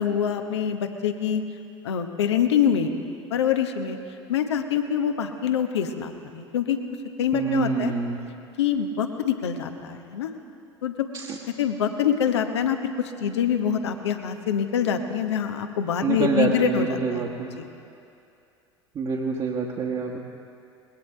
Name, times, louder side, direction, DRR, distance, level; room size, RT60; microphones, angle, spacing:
voice 1, 0.0-1.4 1.8-2.9 3.3-4.0 4.3-6.8 7.2-7.9 8.6-10.3 10.8-11.1 11.6-17.3 17.6-17.7, left 8 dB, 70° left, 7 dB, 1.0 m, -25 dB
voice 2, 7.3-8.2 11.1-11.4 16.0-17.5 18.9-20.2, right 5 dB, 35° right, -2 dB, 1.3 m, -26 dB
21.0 x 17.5 x 3.3 m, 2.6 s
figure-of-eight pair, 70°, 15 cm